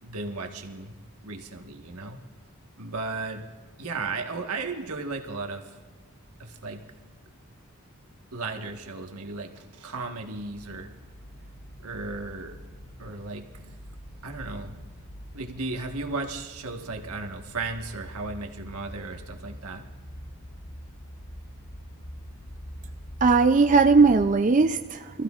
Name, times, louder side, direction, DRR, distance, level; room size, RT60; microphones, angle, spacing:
voice 1, 0.0-0.9 1.2-2.2 2.8-3.4 3.8-5.7 6.4-6.8 8.3-10.9 11.8-12.5 13.0-13.5 14.2-14.8 15.3-19.9, right 3 dB, 90° right, 3 dB, 1.4 m, -35 dB
sound 1, 10.4-24.3, equal, 75° left, 1.4 m, -44 dB
voice 2, 23.2-25.2, right 4 dB, 35° right, 6 dB, 0.4 m, -19 dB
26.0 x 14.5 x 2.4 m, 1.5 s
head